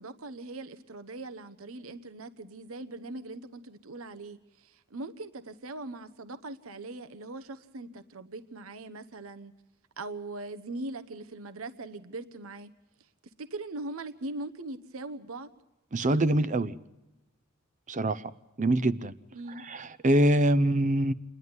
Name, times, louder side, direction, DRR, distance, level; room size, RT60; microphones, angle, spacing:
voice 1, 0.0-9.5 10.0-12.7 13.4-15.5 19.3-19.6, right 2 dB, 70° right, 10 dB, 1.0 m, -40 dB
voice 2, 15.9-16.7 17.9-18.2 18.6-19.1 19.7-21.1, right 1 dB, 35° right, 14 dB, 0.6 m, -24 dB
28.5 x 11.0 x 9.6 m, 1.0 s
head